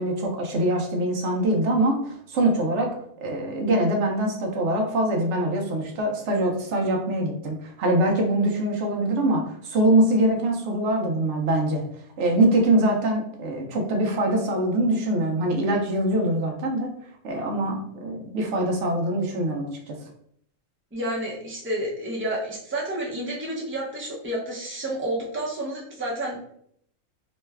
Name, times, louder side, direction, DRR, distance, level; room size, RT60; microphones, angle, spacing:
voice 1, 0.0-2.9 3.2-11.8 12.2-16.9 17.2-20.0, right 1 dB, 60° right, 1 dB, 1.0 m, -23 dB
voice 2, 20.9-26.5, right 1 dB, 15° right, -3 dB, 0.4 m, -30 dB
3.1 x 2.2 x 3.3 m, 0.67 s
omnidirectional pair, 1.5 m